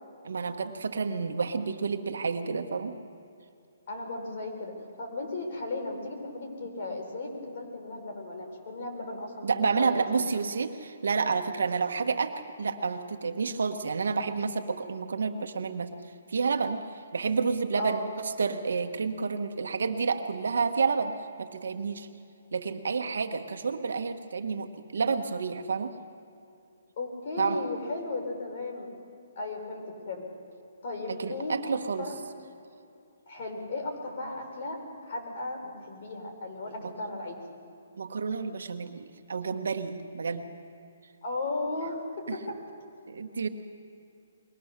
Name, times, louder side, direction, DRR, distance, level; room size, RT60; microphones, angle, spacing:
voice 1, 0.2-2.9 9.4-15.9 16.3-16.8 17.1-22.1 22.5-25.9 27.4-27.6 31.1-32.1 36.8-36.9 38.0-40.6 42.3-42.4 43.1-43.5, right 5 dB, 75° right, 6 dB, 1.6 m, -30 dB
voice 2, 3.9-4.7 5.0-10.3 17.8-18.1 27.0-28.9 29.4-30.2 30.8-31.5 32.0-32.2 33.3-34.8 35.0-37.4 41.2-42.6, left 2 dB, 45° left, 2 dB, 4.7 m, -35 dB
22.5 x 19.5 x 6.8 m, 2.6 s
hypercardioid pair, 165°, 0 cm